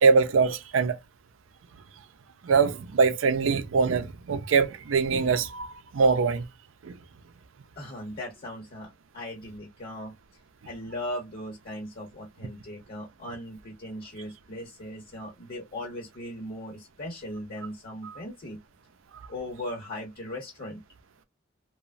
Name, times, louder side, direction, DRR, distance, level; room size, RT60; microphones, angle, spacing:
voice 1, 0.0-1.0 2.4-5.7 5.9-6.4 6.8-6.9 18.0-18.1, right 5 dB, 80° right, 0.4 m, -23 dB
voice 2, 7.8-10.1 10.6-18.6 19.3-20.8, left 1 dB, 50° left, 0.9 m, -38 dB
3.0 x 2.1 x 2.4 m
head